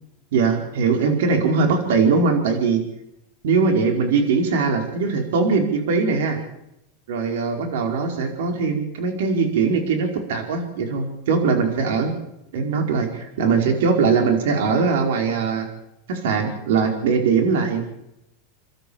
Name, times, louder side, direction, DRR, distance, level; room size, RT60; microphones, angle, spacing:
voice 1, 0.3-2.8 3.4-6.4 7.1-12.1 12.5-15.7 16.1-17.8, right 5 dB, 80° right, 5 dB, 5.0 m, -21 dB
29.5 x 13.0 x 7.3 m, 0.84 s
supercardioid pair, 145°, 0 cm